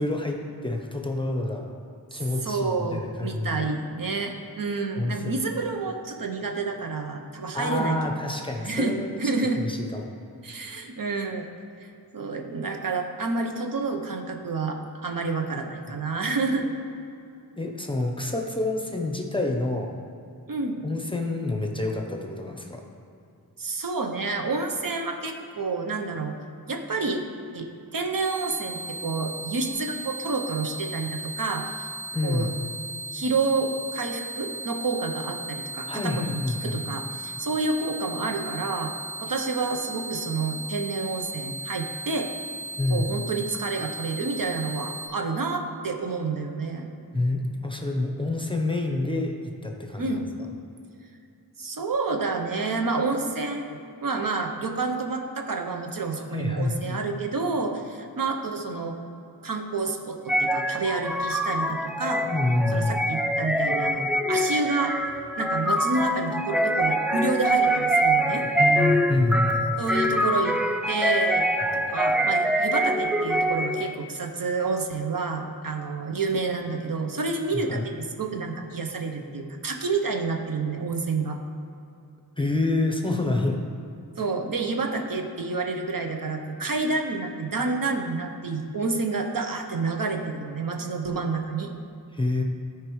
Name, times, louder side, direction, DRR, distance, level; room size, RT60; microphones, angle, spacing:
voice 1, 0.0-1.7 2.1-3.7 5.0-5.3 7.5-9.2 9.6-10.1 15.9-16.0 17.6-20.0 20.8-22.8 32.1-32.5 35.9-36.8 42.8-43.1 47.1-49.3 49.6-50.2 56.3-57.0 62.2-63.0 68.4-69.6 77.5-77.9 82.4-83.6 92.1-92.4, left 2 dB, 15° left, 2 dB, 0.7 m, -27 dB
voice 2, 2.4-8.0 8.6-9.6 10.4-11.4 12.1-16.7 20.5-20.8 23.6-26.4 26.7-27.2 27.5-31.7 32.2-32.5 33.1-36.3 36.6-38.9 39.2-42.3 42.9-46.9 50.0-50.3 51.6-59.0 59.4-62.3 62.7-65.0 65.4-68.5 69.8-70.6 70.9-71.4 71.7-81.4 84.2-91.7, right 3 dB, 55° right, 4 dB, 0.8 m, -29 dB
sound 1, 28.2-45.1, right 2 dB, 75° right, 1.4 m, -36 dB
sound 2, 60.3-73.9, right 1 dB, 5° right, 0.3 m, -24 dB
13.5 x 4.7 x 3.1 m, 2.6 s
wide cardioid pair, 90°, 39 cm